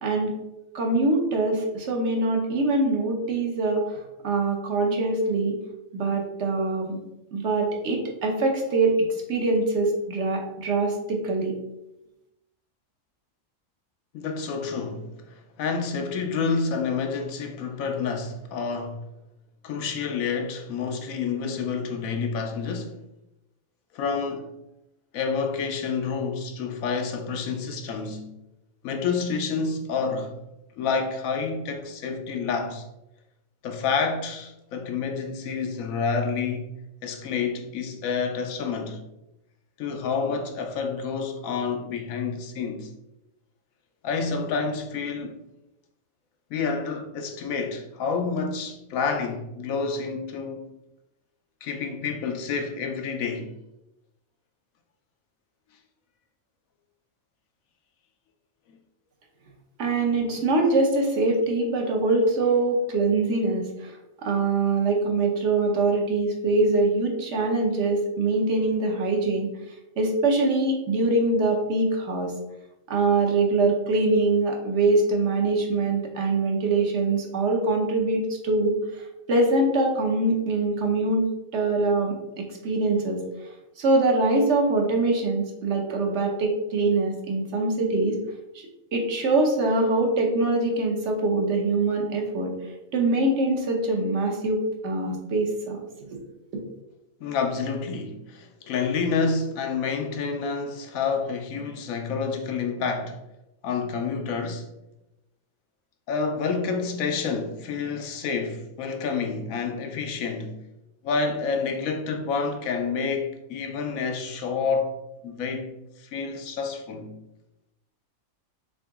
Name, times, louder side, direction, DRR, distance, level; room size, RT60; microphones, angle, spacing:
voice 1, 0.0-0.3 0.7-5.6 5.9-7.0 7.3-11.6 59.8-69.5 70.0-72.3 72.9-81.3 81.5-83.2 83.8-88.1 88.5-88.6 88.9-92.5 92.9-95.8 96.1-96.2, right 2 dB, 60° right, 1.0 m, -23 dB
voice 2, 14.1-19.0 19.6-23.0 23.9-24.5 25.1-28.3 28.8-30.4 30.8-32.8 33.6-36.7 37.0-39.0 39.8-42.9 44.0-45.4 46.5-50.7 51.6-53.5 97.2-103.2 103.6-104.6 106.1-110.6 111.0-115.0 115.2-117.1, left 5 dB, 85° left, 1.1 m, -28 dB
3.9 x 3.4 x 3.5 m
omnidirectional pair, 1.4 m